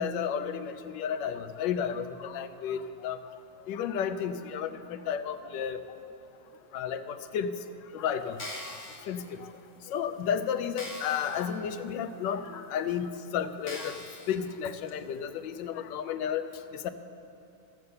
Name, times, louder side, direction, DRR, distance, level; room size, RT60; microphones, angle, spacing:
voice 1, 0.0-3.2 3.7-5.9 6.7-7.5 7.9-8.4 9.1-9.5 9.9-14.0 14.3-16.4 16.7-16.9, left 8 dB, 85° left, 10 dB, 1.3 m, -32 dB
sound 1, 8.3-9.0 9.7-9.8 10.2-10.3 10.8-11.4 11.9-12.0 12.7-12.8 13.6-14.3 14.9-15.0, left 1 dB, 40° left, 2.1 m, -41 dB
14.0 x 7.7 x 6.8 m, 2.8 s
omnidirectional pair, 1.9 m